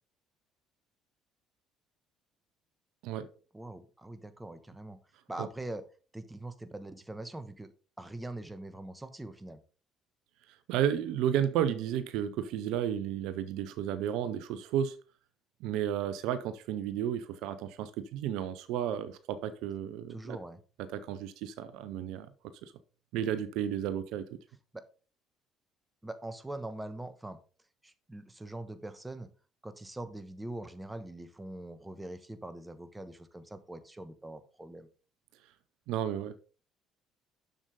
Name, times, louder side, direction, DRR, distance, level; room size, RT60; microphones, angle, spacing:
voice 1, 3.5-5.0 5.3-5.8 6.1-7.7 8.0-9.6 20.1-20.6 24.7-24.8 26.0-27.4 27.8-29.3 29.6-34.9, right 1 dB, 10° right, 1.2 m, -42 dB
voice 2, 10.7-15.0 15.6-20.4 20.8-22.3 22.6-22.7 23.1-24.4 35.9-36.4, right 10 dB, 70° right, 0.6 m, -32 dB
7.1 x 6.6 x 3.7 m
hypercardioid pair, 55°, 0 cm